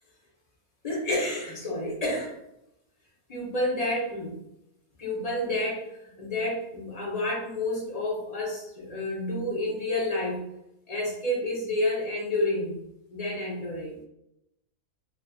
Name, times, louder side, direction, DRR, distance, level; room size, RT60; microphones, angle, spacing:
voice 1, 0.8-2.4 3.3-4.4 5.0-10.5 10.9-12.8 13.1-14.0, left 1 dB, 35° left, -4 dB, 0.7 m, -29 dB
3.3 x 2.6 x 2.3 m, 0.83 s
omnidirectional pair, 1.5 m